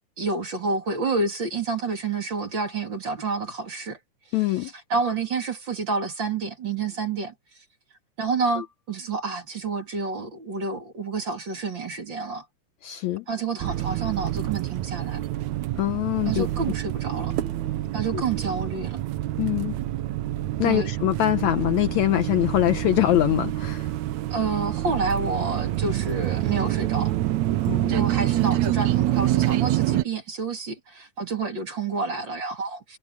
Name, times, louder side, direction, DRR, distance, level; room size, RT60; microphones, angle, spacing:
voice 1, 0.2-4.0 4.3-7.3 8.2-12.4 13.3-15.2 16.2-17.4 17.9-19.0 20.6-20.9 24.3-27.1 27.9-33.0, right 4 dB, 35° right, 3.4 m, -29 dB
voice 2, 4.3-4.7 12.8-13.3 15.8-16.5 18.1-18.2 19.4-19.7 20.6-23.9 27.6-28.1, left 14 dB, 75° left, 1.8 m, -23 dB
sound 1, 13.6-30.0, right 14 dB, 70° right, 2.0 m, -27 dB
omnidirectional pair, 3.7 m